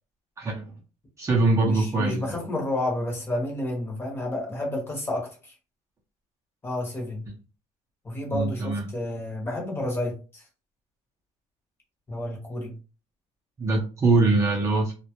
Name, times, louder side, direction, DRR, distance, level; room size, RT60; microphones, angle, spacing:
voice 1, 0.4-0.7 1.2-2.4 8.3-8.8 13.6-14.9, right 3 dB, 25° right, -1 dB, 0.5 m, -23 dB
voice 2, 1.6-5.5 6.6-7.2 8.0-10.4 12.1-12.7, left 1 dB, 20° left, 0 dB, 0.8 m, -30 dB
2.2 x 2.0 x 2.8 m, 0.34 s
cardioid pair, 145°, 13 cm